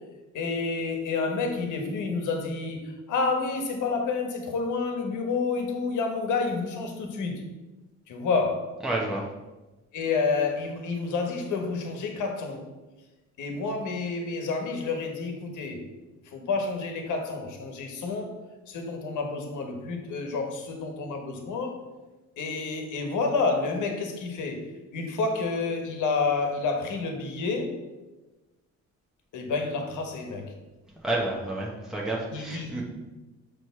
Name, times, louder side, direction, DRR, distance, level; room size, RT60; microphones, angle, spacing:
voice 1, 0.3-7.4 8.1-8.7 9.9-12.6 13.4-15.9 16.3-18.3 18.7-21.8 22.4-24.6 24.9-27.7 29.3-30.5 32.3-32.8, left 4 dB, 80° left, 4 dB, 1.3 m, -29 dB
voice 2, 8.8-9.2 31.0-32.8, right 2 dB, ahead, -3 dB, 1.1 m, -30 dB
6.3 x 3.2 x 5.7 m, 1.1 s
cardioid pair, 90°, 30 cm